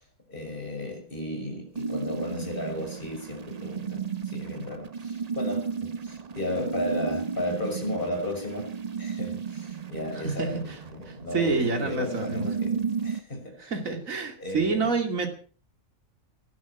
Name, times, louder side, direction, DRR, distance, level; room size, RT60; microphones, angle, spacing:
voice 1, 0.3-8.7 9.0-13.7 14.4-14.9, left 1 dB, 40° left, 3 dB, 6.5 m, -34 dB
sound 1, 1.7-13.2, right 5 dB, 35° right, 0.8 m, -34 dB
voice 2, 10.1-10.5 11.1-12.5 13.6-15.3, right 4 dB, 70° right, 4 dB, 3.1 m, -28 dB
18.0 x 13.0 x 5.8 m, 0.41 s
omnidirectional pair, 1.4 m